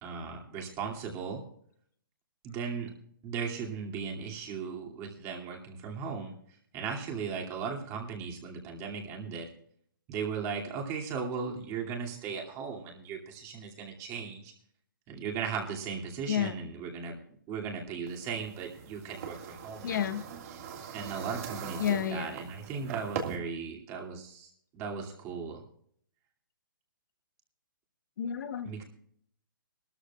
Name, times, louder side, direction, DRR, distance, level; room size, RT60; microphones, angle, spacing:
voice 1, 0.0-1.4 2.4-2.9 3.2-9.5 10.1-14.5 15.1-17.2 17.5-20.0 20.9-25.6 28.6-28.8, right 6 dB, 25° right, 0 dB, 2.6 m, -37 dB
sound 1, 18.1-23.4, right 7 dB, 40° right, 2.0 m, -41 dB
voice 2, 19.8-20.2 21.8-22.4 28.2-28.8, left 9 dB, 55° left, 10 dB, 1.0 m, -30 dB
20.5 x 13.0 x 2.4 m, 0.63 s
hypercardioid pair, 150°, 12 cm